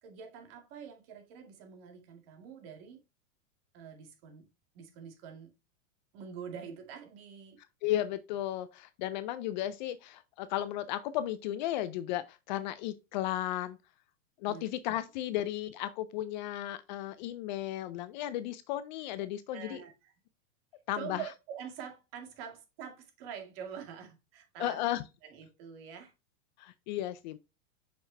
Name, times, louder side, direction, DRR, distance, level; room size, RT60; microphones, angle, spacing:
voice 1, 0.0-3.0 3.7-4.5 4.7-5.5 6.1-7.6 14.5-14.6 19.5-20.1 20.9-26.1, right 8 dB, 50° right, 2.1 m, -45 dB
voice 2, 7.8-13.8 14.4-19.8 20.9-21.2 24.6-25.0 26.6-27.4, left 13 dB, 40° left, 0.4 m, -34 dB
5.9 x 5.4 x 3.2 m
supercardioid pair, 145°, 38 cm